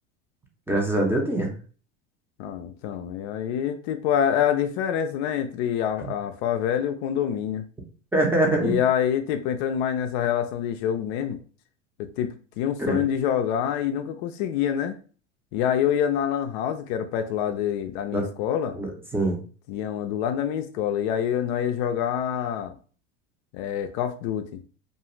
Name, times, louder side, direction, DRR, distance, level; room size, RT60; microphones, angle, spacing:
voice 1, 0.7-1.5 6.0-6.1 8.1-8.8 12.8-13.0 18.1-18.3 18.7-19.4, right 1 dB, 5° right, 0.6 m, -24 dB
voice 2, 2.4-7.7 8.6-11.4 12.0-15.0 15.5-18.8 19.7-22.8 23.5-24.6, left 9 dB, 60° left, 0.5 m, -26 dB
2.5 x 2.3 x 3.0 m
supercardioid pair, 105°, 36 cm